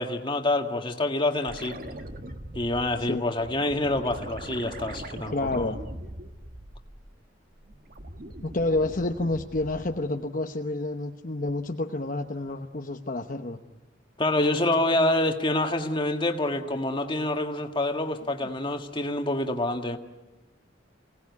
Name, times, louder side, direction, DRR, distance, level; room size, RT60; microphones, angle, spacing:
voice 1, 0.0-1.8 2.6-5.7 14.2-20.0, left 2 dB, 25° left, 4 dB, 1.7 m, -27 dB
sound 1, 1.4-7.2 7.5-10.1 12.5-12.6, right 1 dB, 50° right, 1.6 m, -41 dB
voice 2, 5.3-5.8 8.4-13.6, left 2 dB, 45° left, 3 dB, 1.0 m, -29 dB
29.5 x 18.5 x 9.6 m, 1.1 s
head